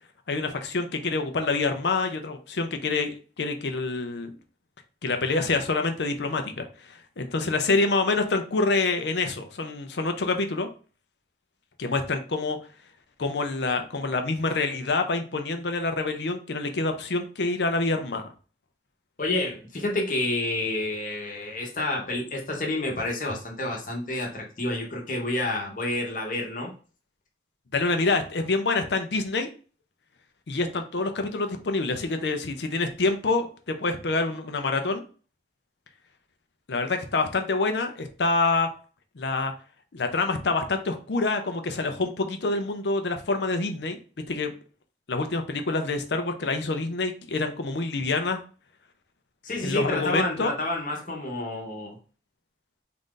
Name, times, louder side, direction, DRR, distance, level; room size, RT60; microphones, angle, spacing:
voice 1, 0.3-4.4 5.0-10.7 11.8-12.6 13.2-18.3 27.7-29.5 30.5-35.0 36.7-38.7 39.2-39.5 39.9-44.0 44.3-44.5 45.1-48.4 49.6-50.5, left 3 dB, 75° left, 6 dB, 0.6 m, -26 dB
voice 2, 19.2-26.7 49.4-52.0, left 2 dB, 45° left, 0 dB, 1.1 m, -29 dB
3.9 x 2.5 x 3.7 m, 0.38 s
head